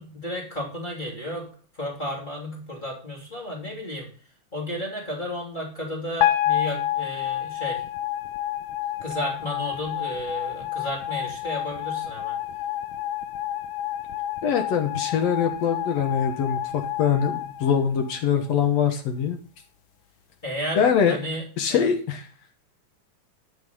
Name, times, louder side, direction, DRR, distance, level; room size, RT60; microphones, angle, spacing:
voice 1, 0.0-1.5 1.7-4.1 4.5-7.8 9.0-12.4 20.4-21.9, equal, 15° left, -3 dB, 2.9 m, -33 dB
sound 1, 6.2-18.5, left 12 dB, 80° left, 1.2 m, -29 dB
voice 2, 14.4-19.4 20.8-21.2 21.6-22.2, left 7 dB, 65° left, 7 dB, 2.0 m, -23 dB
13.0 x 5.4 x 5.4 m, 0.40 s
omnidirectional pair, 3.4 m